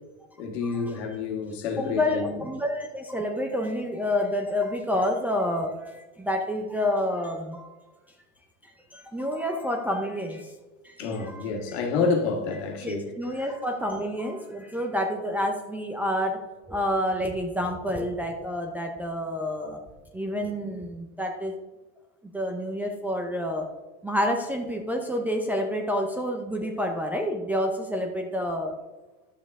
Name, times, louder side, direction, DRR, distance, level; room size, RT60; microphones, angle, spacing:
voice 1, 0.4-2.4 11.0-13.5, left 4 dB, 65° left, 1.9 m, -29 dB
voice 2, 1.8-7.7 8.6-10.5 10.8-11.4 12.8-16.4 16.7-19.8 20.1-21.5 22.3-23.7 24.0-28.8, left 1 dB, 5° right, 0.5 m, -28 dB
11.5 x 7.3 x 3.6 m
supercardioid pair, 155°, 35 cm